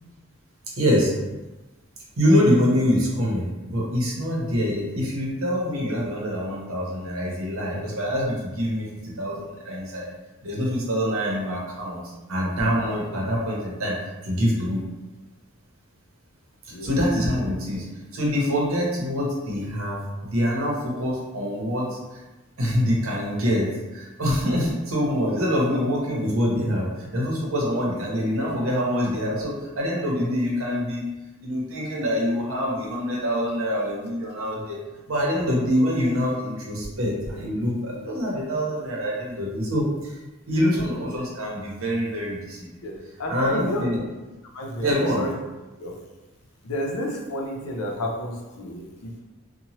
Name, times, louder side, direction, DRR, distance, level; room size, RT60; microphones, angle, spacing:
voice 1, 0.8-1.1 2.2-10.1 10.4-12.0 12.3-14.0 14.2-14.8 16.6-17.8 18.1-22.0 22.6-31.1 31.4-34.8 35.1-40.1 40.5-42.7 43.3-44.0 44.8-45.2, equal, 70° right, -3 dB, 0.8 m, -25 dB
voice 2, 16.7-17.3 40.5-40.9 42.8-43.9 44.5-45.3 45.8-45.9 46.6-49.2, equal, 90° left, 0 dB, 0.6 m, -32 dB
2.8 x 2.2 x 2.9 m, 1.1 s
head